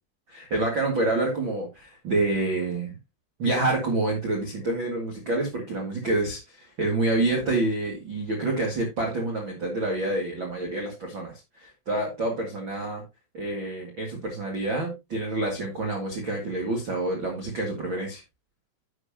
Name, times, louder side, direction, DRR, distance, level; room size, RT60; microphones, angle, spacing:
voice 1, 0.3-2.9 3.4-13.0 13.3-18.2, right 2 dB, 60° right, 0 dB, 1.2 m, -27 dB
10.5 x 8.0 x 2.8 m, 0.23 s
omnidirectional pair, 5.8 m